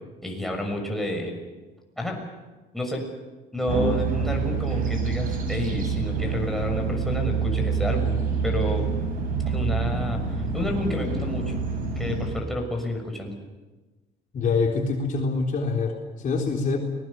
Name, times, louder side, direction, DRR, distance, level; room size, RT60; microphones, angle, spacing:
voice 1, 0.2-1.4 2.0-2.2 2.7-3.1 3.5-8.9 9.5-10.2 10.5-11.6 12.0-13.3, left 1 dB, ahead, 1 dB, 6.3 m, -30 dB
sound 1, 3.7-12.3, right 5 dB, 55° right, 8.0 m, -26 dB
voice 2, 14.3-16.8, left 4 dB, 50° left, 1 dB, 3.7 m, -25 dB
29.5 x 20.5 x 7.0 m, 1.2 s
cardioid pair, 110°, 17 cm